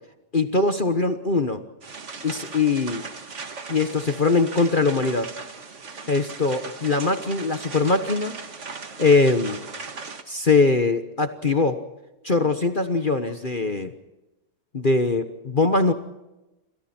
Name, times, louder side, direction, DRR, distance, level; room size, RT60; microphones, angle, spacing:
voice 1, 0.3-1.6 2.2-3.0 3.7-5.3 6.1-8.3 9.0-9.6 10.3-11.9 12.2-13.9 14.7-15.9, left 3 dB, 35° left, 9 dB, 1.2 m, -22 dB
sound 1, 1.8-10.2, right 4 dB, 40° right, 2.0 m, -38 dB
29.0 x 26.0 x 4.4 m, 1.0 s
omnidirectional pair, 1.9 m